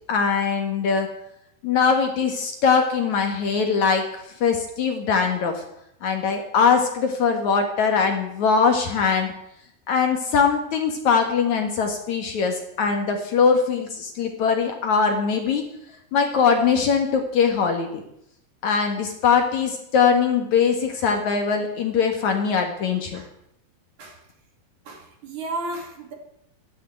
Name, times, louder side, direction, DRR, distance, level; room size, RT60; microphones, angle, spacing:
voice 1, 0.1-1.1 1.6-5.6 6.0-9.3 9.9-15.7 16.1-18.0 18.6-23.2, left 5 dB, 55° left, 4 dB, 2.6 m, -21 dB
voice 2, 24.9-26.1, right 2 dB, 55° right, 3 dB, 3.8 m, -33 dB
13.0 x 11.0 x 9.1 m, 0.77 s
omnidirectional pair, 4.4 m